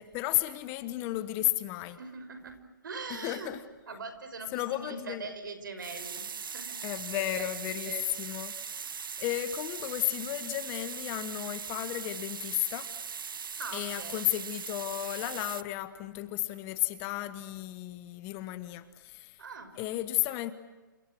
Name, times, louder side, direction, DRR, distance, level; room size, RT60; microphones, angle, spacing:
voice 1, 0.0-2.0 3.1-3.6 4.5-5.3 6.8-8.9 9.2-12.9 13.7-19.4 19.8-20.5, left 16 dB, 20° left, 12 dB, 1.2 m, -33 dB
voice 2, 2.0-3.6 3.9-6.8 7.1-7.5 7.9-8.1 13.6-14.3 19.4-19.8, right 4 dB, 70° right, 10 dB, 5.7 m, -42 dB
sound 1, 5.8-15.6, right 6 dB, 85° right, 0.9 m, -40 dB
29.0 x 27.5 x 6.3 m, 1.2 s
hypercardioid pair, 160°, 11 cm